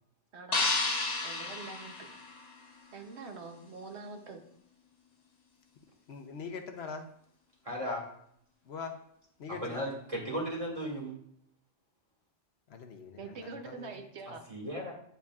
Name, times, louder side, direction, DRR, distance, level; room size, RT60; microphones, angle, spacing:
voice 1, 0.3-0.7 1.2-2.1 2.9-4.4 13.2-14.4, right 4 dB, 70° right, 1.1 m, -44 dB
sound 1, 0.5-2.8, left 3 dB, 40° left, 0.8 m, -32 dB
voice 2, 6.1-7.1 8.7-9.0 9.4-9.9 12.7-14.1, left 5 dB, 65° left, 1.0 m, -42 dB
voice 3, 7.6-8.0 9.5-11.2 14.2-14.9, equal, 30° right, 1.8 m, -36 dB
9.0 x 6.9 x 2.4 m
omnidirectional pair, 1.2 m